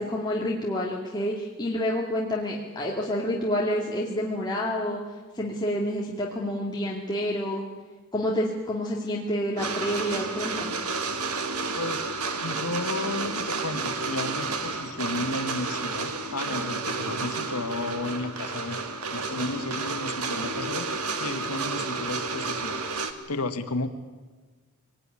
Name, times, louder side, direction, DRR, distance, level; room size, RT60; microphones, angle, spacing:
voice 1, 0.0-5.0 5.3-7.6 8.1-10.8, left 1 dB, 20° left, -3 dB, 2.5 m, -28 dB
sound 1, 9.6-23.1, right 4 dB, 80° right, 1.9 m, -31 dB
voice 2, 11.6-12.1 12.4-23.9, left 2 dB, 85° left, 7 dB, 1.6 m, -33 dB
23.5 x 19.0 x 9.8 m, 1.4 s
head